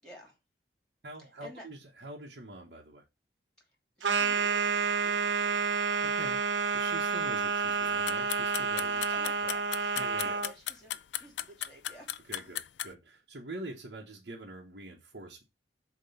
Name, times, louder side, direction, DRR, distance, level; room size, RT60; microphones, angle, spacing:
voice 1, 0.0-0.4 1.2-1.7 9.1-9.7 9.9-12.1, equal, 5° left, 0 dB, 3.0 m, -52 dB
voice 2, 1.0-3.0 6.0-9.2 10.0-10.4 12.2-15.4, right 2 dB, 60° right, -2 dB, 1.2 m, -45 dB
sound 1, 4.0-10.5, right 5 dB, 85° right, 0.8 m, -29 dB
sound 2, 7.9-12.9, left 13 dB, 75° left, 0.3 m, -36 dB
7.2 x 3.0 x 5.5 m, 0.24 s
head